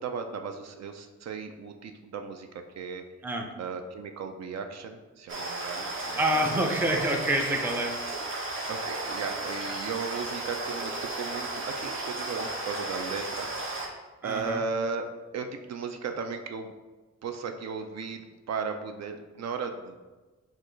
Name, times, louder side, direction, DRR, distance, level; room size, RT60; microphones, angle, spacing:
voice 1, 0.0-2.5 2.8-3.0 3.6-6.5 8.7-13.5 14.2-15.1 15.3-16.7 17.2-20.0, right 5 dB, 65° right, 6 dB, 0.4 m, -36 dB
sound 1, 5.3-13.9, right 2 dB, 45° right, 0.8 m, -34 dB
voice 2, 6.2-7.9 14.2-14.6, right 1 dB, 5° right, 3 dB, 0.4 m, -27 dB
6.5 x 2.4 x 3.1 m, 1.2 s
wide cardioid pair, 130°, 29 cm